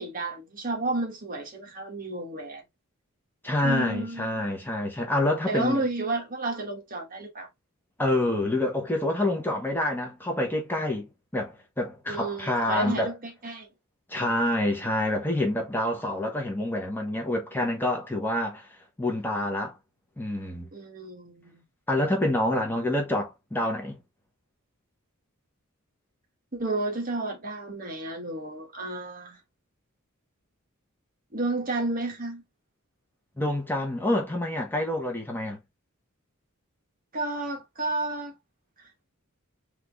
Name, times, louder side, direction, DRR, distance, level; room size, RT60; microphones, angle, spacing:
voice 1, 0.0-2.6 3.6-4.5 5.5-7.5 12.1-13.7 20.7-21.6 26.5-29.4 31.3-32.4 37.1-38.4 38.8-38.9, right 2 dB, 40° right, 1.3 m, -32 dB
voice 2, 3.4-5.8 8.0-13.1 14.1-18.7 19.0-19.8 20.2-20.7 21.9-24.0 33.4-35.6, left 1 dB, 10° left, 1.1 m, -27 dB
3.8 x 3.2 x 3.3 m
head